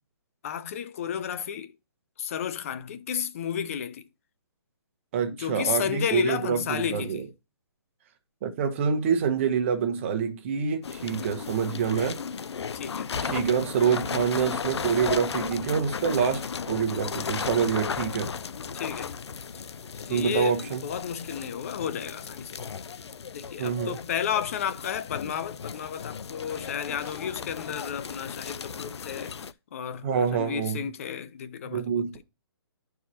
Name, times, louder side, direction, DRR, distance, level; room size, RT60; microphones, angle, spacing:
voice 1, 0.4-1.7 2.2-4.1 5.4-7.2 12.7-13.1 18.7-19.1 20.0-22.6 23.3-29.4 29.7-32.2, left 8 dB, 35° left, 0.5 m, -32 dB
voice 2, 5.1-7.2 8.4-12.2 13.2-18.3 20.1-20.8 23.6-24.0 30.0-30.8 31.7-32.1, right 7 dB, 30° right, 1.1 m, -26 dB
sound 1, 10.8-29.5, left 6 dB, 90° left, 0.5 m, -35 dB
11.5 x 4.7 x 2.8 m
hypercardioid pair, 165°, 14 cm